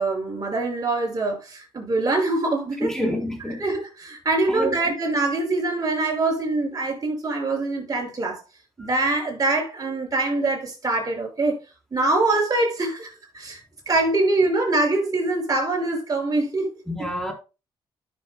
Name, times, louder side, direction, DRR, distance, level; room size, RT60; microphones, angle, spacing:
voice 1, 0.0-2.9 3.6-8.4 8.8-11.6 11.9-13.6 13.9-16.8, right 2 dB, 35° right, 5.8 m, -24 dB
voice 2, 2.8-3.6 4.5-4.8 16.9-17.3, equal, 5° left, 3.8 m, -27 dB
12.0 x 7.2 x 2.2 m
supercardioid pair, 60°, 10 cm